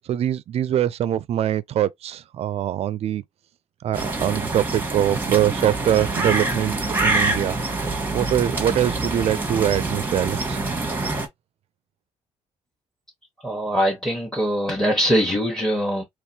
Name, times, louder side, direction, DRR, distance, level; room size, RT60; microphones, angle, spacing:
voice 1, 0.1-3.2 3.8-6.8 7.0-7.5 8.1-10.8, right 11 dB, 55° right, 0.4 m, -23 dB
sound 1, 3.9-11.3, right 3 dB, 15° right, 1.1 m, -26 dB
voice 2, 13.4-16.0, equal, 5° left, 1.1 m, -22 dB
3.5 x 3.0 x 2.7 m
cardioid pair, 110°, 12 cm